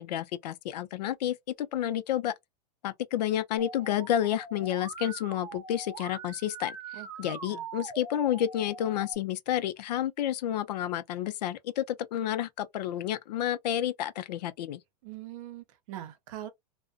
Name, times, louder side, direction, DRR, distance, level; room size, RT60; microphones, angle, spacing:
voice 1, 0.0-2.3 2.8-6.8 7.2-14.8, left 11 dB, 80° left, 0.5 m, -30 dB
Musical instrument, 3.6-9.1, right 5 dB, 20° right, 0.6 m, -43 dB
voice 2, 6.9-7.7 15.0-16.5, right 13 dB, 55° right, 0.7 m, -43 dB
2.5 x 2.1 x 2.4 m
supercardioid pair, 150°, 21 cm